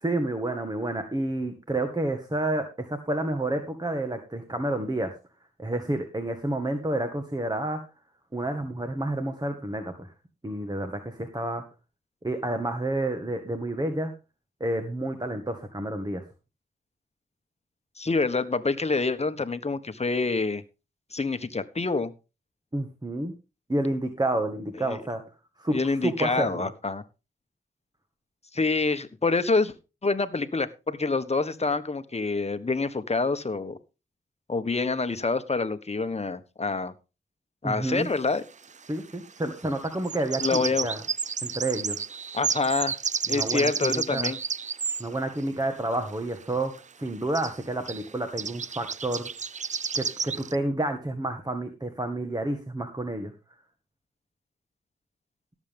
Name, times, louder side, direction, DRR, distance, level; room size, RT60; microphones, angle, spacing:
voice 1, 0.0-5.2 5.6-7.9 8.3-10.1 10.4-11.6 12.2-14.1 14.6-16.2 22.7-23.3 23.7-25.2 25.6-26.7 37.6-38.1 38.9-41.0 41.4-42.0 43.3-44.3 45.0-49.3 49.9-53.3, right 1 dB, 20° right, 6 dB, 1.8 m, -30 dB
voice 2, 18.0-20.6 21.1-22.1 24.9-25.0 25.7-27.0 28.5-29.7 30.0-33.8 34.5-36.9 37.6-38.4 40.4-40.9 42.3-42.9 43.3-44.4, left 3 dB, 30° left, 11 dB, 1.4 m, -26 dB
sound 1, 38.0-38.1 39.8-45.0 46.8-46.9 47.1-47.2 47.3-47.6 47.9-48.1 48.4-50.5, right 6 dB, 35° right, 0.5 m, -31 dB
17.5 x 7.5 x 3.6 m, 0.30 s
cardioid pair, 60°, 21 cm